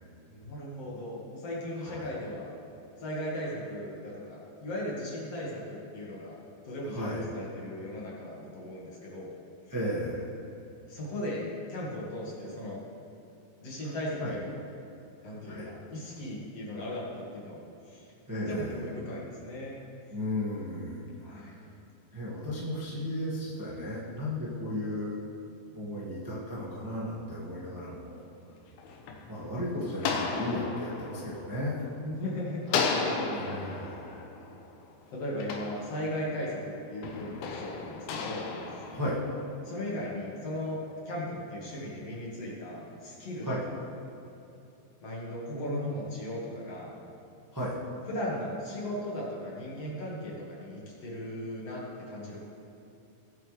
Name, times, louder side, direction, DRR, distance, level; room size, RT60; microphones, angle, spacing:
voice 1, 0.3-2.5 3.0-6.4 6.6-9.3 10.9-12.8 13.6-14.6 15.2-18.1 18.4-19.8 21.2-21.6 25.9-26.1 29.3-29.9 32.0-33.3 35.1-38.9 39.6-40.8 41.1-43.5 45.0-46.9 48.1-52.4, left 1 dB, 50° left, -5 dB, 2.5 m, -37 dB
voice 2, 1.8-2.1 6.9-7.3 9.7-10.3 14.2-14.3 15.4-15.7 18.3-18.8 20.1-21.0 21.3-21.5 22.1-25.2 25.7-28.2 29.3-31.9 33.3-34.2 38.9-39.2 43.4-43.6 45.5-45.9 47.5-47.7, left 1 dB, 15° right, -7 dB, 0.6 m, -35 dB
sound 1, 28.5-32.2 32.7-36.4 37.0-39.7, left 4 dB, 85° left, 2.8 m, -35 dB
18.5 x 8.2 x 3.4 m, 2.8 s
omnidirectional pair, 4.3 m